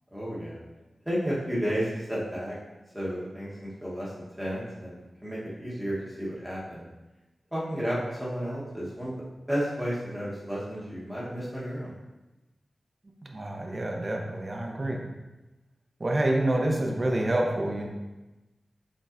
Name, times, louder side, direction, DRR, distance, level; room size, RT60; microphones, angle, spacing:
voice 1, 0.1-0.6 1.0-2.6 2.9-6.9 7.5-9.1 9.5-11.9, equal, 5° right, -7 dB, 1.0 m, -32 dB
voice 2, 13.2-15.0 16.0-17.9, right 1 dB, 35° right, 1 dB, 0.6 m, -27 dB
5.3 x 3.8 x 2.5 m, 1.1 s
wide cardioid pair, 125°, 0 cm